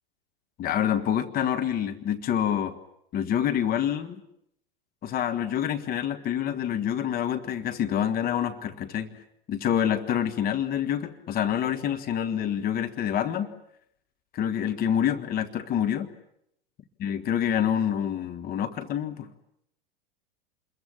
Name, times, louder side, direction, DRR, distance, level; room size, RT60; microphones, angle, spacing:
voice 1, 0.6-2.8 3.1-4.2 5.0-9.2 9.5-13.5 14.3-16.1 17.0-19.3, left 9 dB, 30° left, 9 dB, 1.6 m, -27 dB
29.0 x 22.0 x 8.7 m, 0.76 s
figure-of-eight pair, 90°, 29 cm